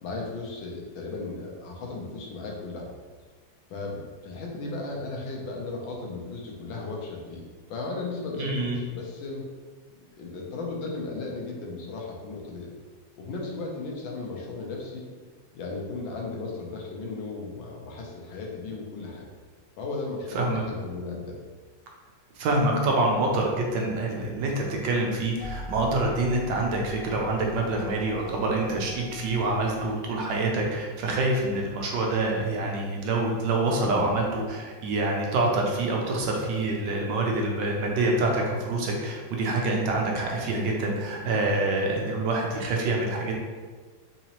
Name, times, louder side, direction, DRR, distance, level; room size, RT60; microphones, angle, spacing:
voice 1, 0.0-2.9 3.7-7.4 7.7-9.4 10.2-12.7 13.2-15.0 15.5-19.3 19.8-21.4 33.8-34.2, left 3 dB, 85° left, -1 dB, 1.4 m, -35 dB
voice 2, 8.3-8.8 20.3-20.6 22.4-43.3, right 2 dB, 75° right, 0 dB, 1.3 m, -26 dB
sound 1, 25.4-29.9, left 1 dB, 25° left, 1.0 m, -42 dB
4.0 x 2.8 x 2.9 m, 1.5 s
omnidirectional pair, 2.1 m